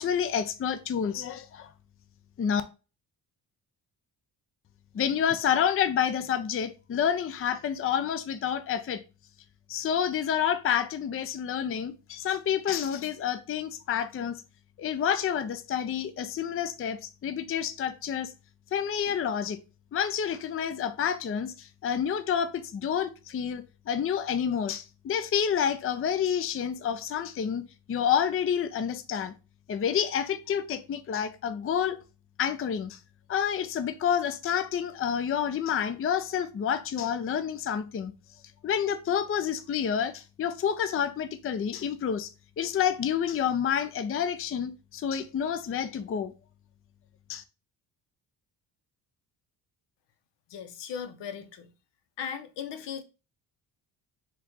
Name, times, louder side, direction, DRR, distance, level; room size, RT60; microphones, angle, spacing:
voice 1, 0.0-1.7 2.4-2.6 4.9-9.0 9.7-14.4 14.8-18.3 18.7-19.6 19.9-29.3 29.7-32.0 32.4-33.0 33.3-38.1 38.6-42.3 42.6-46.3 47.3-47.4, left 8 dB, 30° left, 0.5 m, -29 dB
voice 2, 50.5-51.7 52.2-53.0, left 7 dB, 75° left, 0.8 m, -37 dB
4.2 x 2.4 x 3.7 m
supercardioid pair, 65°, 43 cm